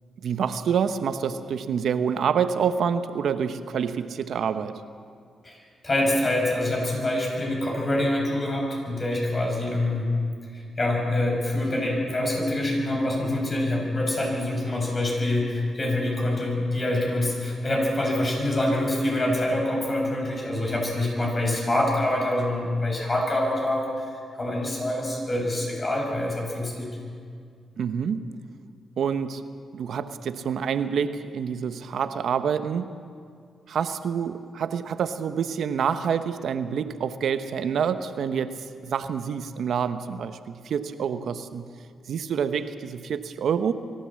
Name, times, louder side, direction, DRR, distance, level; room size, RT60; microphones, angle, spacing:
voice 1, 0.2-4.8 27.8-28.3 29.0-29.5 29.7-33.0 33.7-41.7 42.1-43.7, right 7 dB, 75° right, 10 dB, 0.9 m, -27 dB
voice 2, 5.4-10.2 10.5-26.9, left 1 dB, 35° left, 0 dB, 6.9 m, -25 dB
24.0 x 14.5 x 7.6 m, 2.2 s
cardioid pair, 80°, 0 cm